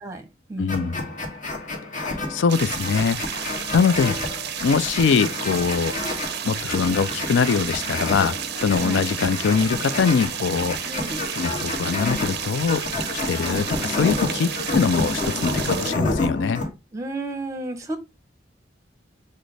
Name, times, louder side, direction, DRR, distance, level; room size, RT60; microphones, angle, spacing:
voice 1, 0.0-1.1 8.8-9.0 10.9-11.2 16.9-18.0, right 2 dB, 15° right, 0.7 m, -33 dB
voice 2, 0.6-1.0 1.9-4.2 4.6-6.0 6.4-10.8 11.4-12.8 13.1-16.6, left 5 dB, 75° left, 0.4 m, -23 dB
sound 1, 0.7-16.7, left 2 dB, 45° left, 1.3 m, -29 dB
sound 2, 2.5-16.0, right 10 dB, 60° right, 0.4 m, -32 dB
6.1 x 2.1 x 3.2 m
head